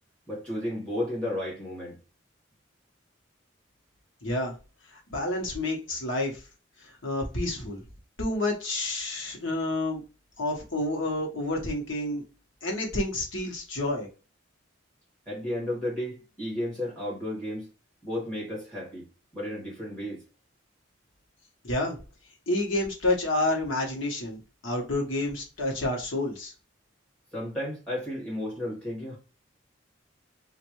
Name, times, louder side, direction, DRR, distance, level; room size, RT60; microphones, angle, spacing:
voice 1, 0.3-2.0 15.3-17.7 18.0-19.1 19.3-20.2 27.3-29.2, left 1 dB, 5° left, 1.9 m, -33 dB
voice 2, 4.2-4.5 4.9-6.4 6.8-7.8 8.2-10.0 10.4-12.2 12.6-14.1 21.6-22.0 22.5-26.5, left 2 dB, 70° left, 1.2 m, -29 dB
3.2 x 2.5 x 3.0 m
head